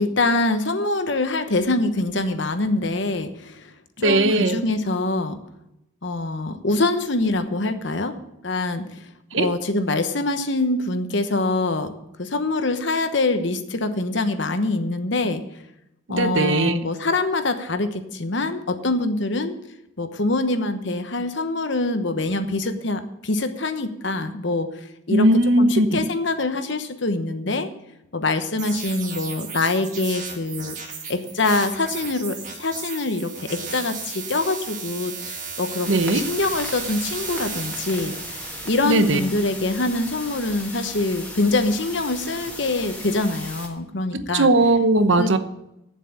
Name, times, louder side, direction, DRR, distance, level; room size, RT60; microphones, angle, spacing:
voice 1, 0.0-5.4 6.0-8.1 8.4-9.0 9.3-11.9 12.2-15.4 16.1-19.6 20.0-24.7 25.1-25.2 25.6-27.7 28.1-30.8 31.1-38.2 38.6-44.5 45.2-45.3, left 2 dB, 60° left, 9 dB, 1.0 m, -24 dB
voice 2, 4.0-4.6 9.3-9.5 16.1-16.8 25.1-26.1 35.9-36.2 38.8-39.2 44.1-45.4, right 2 dB, 65° right, 10 dB, 0.9 m, -19 dB
sound 1, 28.6-40.0, right 5 dB, 35° right, 1.9 m, -35 dB
sound 2, 35.8-43.7, left 1 dB, 5° left, 1.6 m, -37 dB
9.3 x 7.4 x 8.8 m, 0.84 s
head